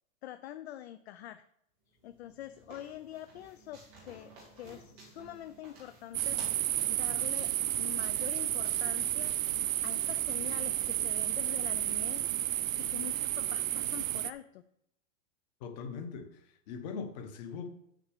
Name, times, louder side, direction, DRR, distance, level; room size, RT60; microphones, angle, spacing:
voice 1, 0.2-1.4 2.0-4.3 4.6-6.4 6.9-7.5 7.8-9.3 9.8-12.2 12.8-14.6, left 12 dB, 55° left, 11 dB, 0.6 m, -45 dB
sound 1, 1.9-10.1, right 2 dB, 5° right, 0.3 m, -55 dB
sound 2, 6.1-14.3, right 13 dB, 85° right, 0.8 m, -32 dB
voice 2, 15.6-17.7, left 5 dB, 35° left, 7 dB, 1.3 m, -41 dB
7.4 x 6.6 x 6.6 m, 0.76 s
supercardioid pair, 170°, 39 cm